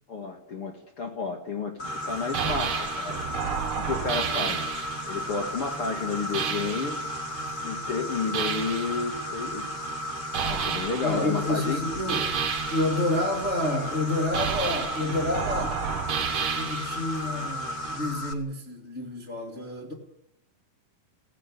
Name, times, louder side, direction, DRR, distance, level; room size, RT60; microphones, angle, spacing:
voice 1, 0.1-3.2 3.5-4.7 5.1-7.0 7.6-9.7 10.5-11.8, left 4 dB, 45° left, 3 dB, 2.6 m, -31 dB
Insect, 1.8-18.3, left 2 dB, 75° left, 0.5 m, -35 dB
sound 1, 1.8-18.0, right 7 dB, 45° right, 2.2 m, -33 dB
voice 2, 11.0-12.3 12.7-15.8 16.6-19.9, left 1 dB, 20° left, -1 dB, 2.7 m, -29 dB
17.5 x 16.0 x 10.0 m, 0.80 s
omnidirectional pair, 3.9 m